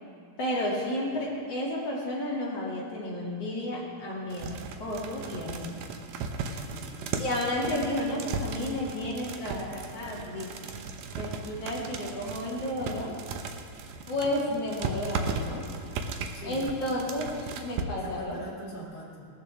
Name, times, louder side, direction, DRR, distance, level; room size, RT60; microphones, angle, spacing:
voice 1, 0.4-4.5 4.8-5.7 6.5-6.6 7.2-10.7 11.2-13.1 14.1-15.6 16.4-18.4, left 1 dB, 45° left, -5 dB, 3.2 m, -32 dB
sound 1, 4.3-17.8, right 4 dB, 75° right, 1.7 m, -36 dB
voice 2, 6.6-7.0 14.2-14.4 16.3-16.7 17.9-19.3, equal, 30° left, -5 dB, 3.3 m, -42 dB
19.0 x 13.5 x 3.5 m, 2.2 s
omnidirectional pair, 4.1 m